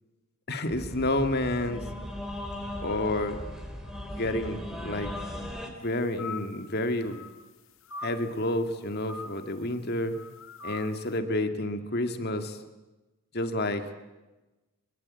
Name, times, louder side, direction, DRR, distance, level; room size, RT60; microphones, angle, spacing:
voice 1, 0.5-1.8 2.8-3.4 4.1-5.5 5.8-7.2 8.0-10.2 10.6-12.6 13.3-13.8, left 1 dB, 45° left, 7 dB, 2.1 m, -29 dB
sound 1, 0.7-5.7, left 1 dB, 5° right, 3.6 m, -38 dB
sound 2, 6.2-6.7 7.0-7.5 7.9-8.2 9.1-9.6 10.1-11.0, left 3 dB, 60° left, 2.0 m, -41 dB
24.0 x 23.5 x 8.5 m, 1.1 s
head